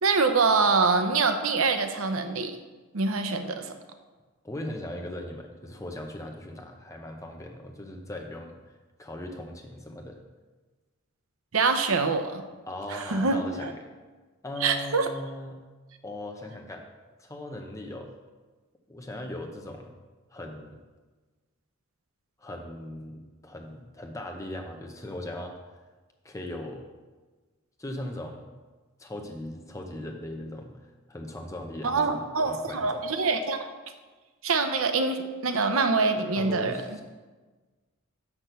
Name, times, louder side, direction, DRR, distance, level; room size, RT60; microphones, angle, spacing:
voice 1, 0.0-2.6 2.9-3.7 11.5-12.4 12.9-13.7 14.6-15.1 31.8-33.7 34.4-36.8, right 4 dB, 75° right, 7 dB, 0.7 m, -25 dB
voice 2, 4.4-8.6 9.0-10.2 12.7-13.9 14.4-15.6 16.0-16.9 17.2-18.1 18.9-20.0 20.3-20.8 22.4-25.6 26.2-26.8 27.8-28.5 29.0-30.8 31.1-33.0 36.4-37.0, left 1 dB, 15° left, 2 dB, 0.7 m, -38 dB
6.3 x 6.0 x 6.8 m, 1.3 s
head